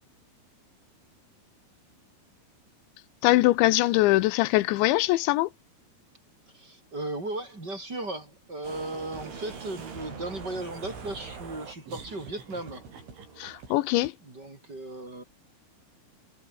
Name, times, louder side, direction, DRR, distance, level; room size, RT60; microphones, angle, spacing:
voice 1, 3.2-5.5 13.4-14.1, left 18 dB, 80° left, 3.1 m, -22 dB
voice 2, 6.5-12.8 14.2-15.2, right 2 dB, 20° right, 6.6 m, -36 dB
sound 1, 8.6-14.1, right 5 dB, 85° right, 9.3 m, -43 dB
omnidirectional pair, 5.3 m